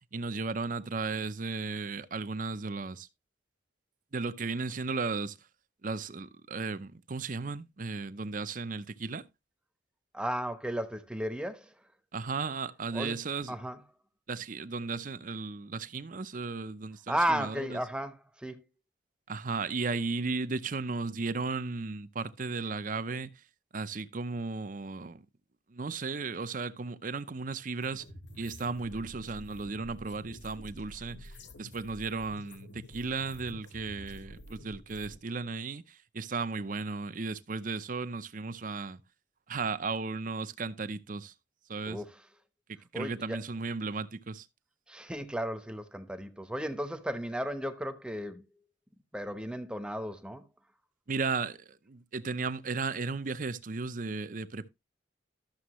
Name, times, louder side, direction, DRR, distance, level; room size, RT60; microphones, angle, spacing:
voice 1, 0.1-3.1 4.1-5.4 5.8-9.3 12.1-13.5 14.3-17.8 19.3-23.3 23.7-25.2 25.7-28.1 28.3-31.3 31.6-39.0 39.5-41.3 41.7-42.0 42.9-44.5 51.1-54.7, right 4 dB, 45° right, 0.6 m, -35 dB
voice 2, 10.1-11.7 12.9-13.2 13.5-13.8 17.1-18.7 41.9-42.2 42.9-43.4 44.9-48.4 49.1-50.4, equal, 5° right, 0.9 m, -34 dB
sound 1, 27.8-35.2, left 1 dB, 80° left, 1.7 m, -49 dB
13.0 x 7.1 x 3.0 m
head